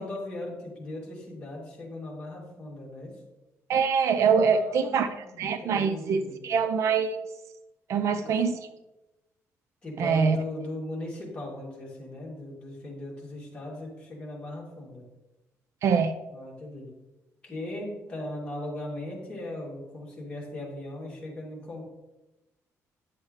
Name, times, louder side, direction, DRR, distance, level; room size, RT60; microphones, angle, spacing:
voice 1, 0.0-3.2 4.5-6.5 8.0-8.4 9.8-15.0 16.3-16.9 17.4-21.8, left 1 dB, 20° left, -4 dB, 2.6 m, -38 dB
voice 2, 3.7-5.1 5.4-7.2 7.9-8.6 10.0-10.4 15.8-16.1, right 6 dB, 60° right, 10 dB, 0.5 m, -24 dB
10.0 x 7.1 x 3.2 m, 1.0 s
cardioid pair, 160°, 6 cm